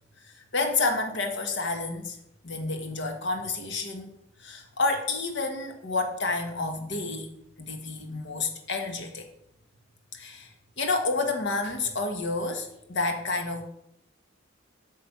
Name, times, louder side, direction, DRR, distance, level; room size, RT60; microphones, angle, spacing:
voice 1, 0.2-2.2 2.4-4.1 4.4-7.3 7.6-9.2 10.1-10.5 10.8-13.6, left 3 dB, 60° left, 5 dB, 1.6 m, -29 dB
8.8 x 6.4 x 6.0 m, 0.80 s
head